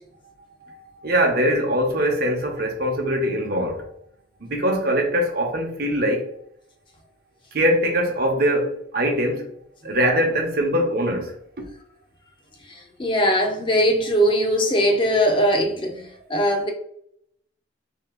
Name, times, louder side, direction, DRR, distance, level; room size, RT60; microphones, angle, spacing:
voice 1, 1.0-3.9 4.4-6.3 7.5-9.5 9.8-11.4, equal, 55° right, 0.8 m, -22 dB
voice 2, 12.7-16.7, equal, 25° left, 0.5 m, -21 dB
2.9 x 2.9 x 3.6 m
head